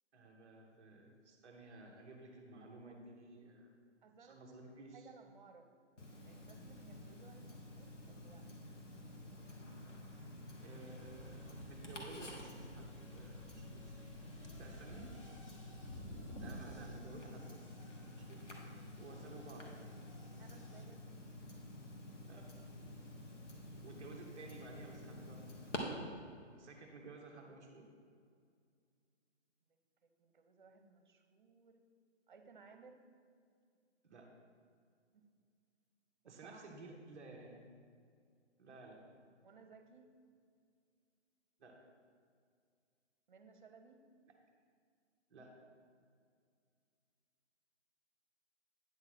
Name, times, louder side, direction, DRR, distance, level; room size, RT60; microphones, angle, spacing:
voice 1, 0.1-3.7 4.2-5.1 10.6-14.0 14.6-15.1 16.4-17.7 18.2-18.5 19.0-19.9 22.2-22.5 23.8-25.9 26.5-27.9 34.0-34.3 36.2-37.6 38.6-39.0 41.6-41.8 45.3-45.6, right 2 dB, 10° right, -5 dB, 0.7 m, -54 dB
voice 2, 4.0-5.7 6.2-8.5 20.4-21.1 29.7-31.8 32.3-33.0 35.1-35.2 36.2-37.0 39.4-40.1 43.3-44.0, right 5 dB, 40° right, 7 dB, 0.8 m, -61 dB
Tick-tock, 6.0-25.8, left 1 dB, 80° left, 1.8 m, -51 dB
sound 1, 9.9-10.0 10.5-20.8, equal, 25° left, 0.7 m, -55 dB
9.5 x 4.0 x 6.4 m, 2.2 s
hypercardioid pair, 165°, 36 cm